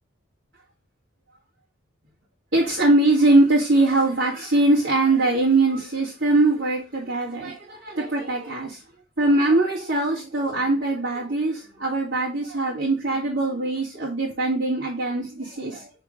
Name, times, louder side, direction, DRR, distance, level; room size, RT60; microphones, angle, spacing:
voice 1, 2.5-8.8 9.2-15.9, right 2 dB, 65° right, -7 dB, 2.2 m, -22 dB
5.9 x 3.7 x 4.9 m, 0.32 s
head